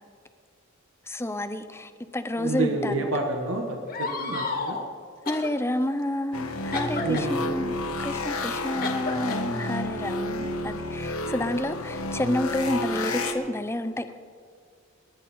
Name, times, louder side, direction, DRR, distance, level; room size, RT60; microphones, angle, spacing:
voice 1, 1.1-3.1 5.3-14.1, left 1 dB, 10° left, 10 dB, 0.7 m, -30 dB
voice 2, 2.4-4.8 7.0-7.4 11.3-11.5, right 2 dB, 70° right, 2 dB, 1.4 m, -29 dB
sound 1, 3.9-4.9 5.2-5.5 6.7-7.3 8.8-9.4 10.4-10.6 11.5-12.7, left 3 dB, 45° left, 1.8 m, -33 dB
sound 2, 6.3-13.3, left 2 dB, 90° left, 1.4 m, -30 dB
28.0 x 11.0 x 4.4 m, 2.1 s
head